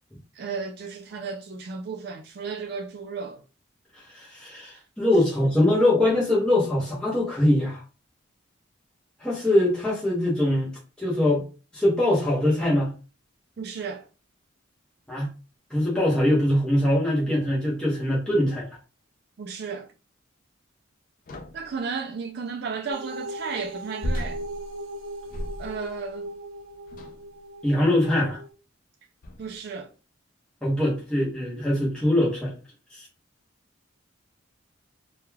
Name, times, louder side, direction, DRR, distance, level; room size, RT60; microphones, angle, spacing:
voice 1, 0.3-3.4 13.6-14.1 19.4-19.9 21.5-24.4 25.6-26.3 29.4-29.9, right 5 dB, 50° right, 0.3 m, -34 dB
voice 2, 3.9-7.8 9.2-10.7 11.0-11.4 11.7-12.9 15.1-15.3 15.7-18.7 27.6-28.4 30.6-32.5 32.9-33.1, left 1 dB, 5° left, 0.7 m, -22 dB
sound 1, 21.3-21.8 24.0-26.0 26.9-27.3 28.2-28.4 29.2-29.6, equal, 40° left, 0.3 m, -34 dB
sound 2, 22.9-28.5, right 1 dB, 90° right, 0.6 m, -38 dB
2.2 x 2.2 x 3.1 m
head